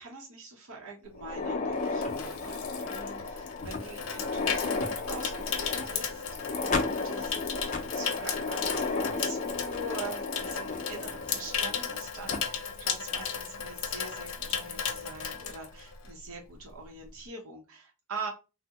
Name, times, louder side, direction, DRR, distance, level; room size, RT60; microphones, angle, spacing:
voice 1, 0.0-18.3, right 3 dB, 80° right, -1 dB, 0.7 m, -44 dB
Water tap faucet / Sink (filling or washing), 1.2-16.3 16.5-16.8, left 6 dB, 80° left, 0.6 m, -35 dB
sound 1, 1.2-11.9 12.3-12.4 13.2-13.3 13.8-13.9 15.2-15.5, left 3 dB, 35° left, 0.4 m, -34 dB
3.4 x 2.0 x 2.8 m, 0.30 s
head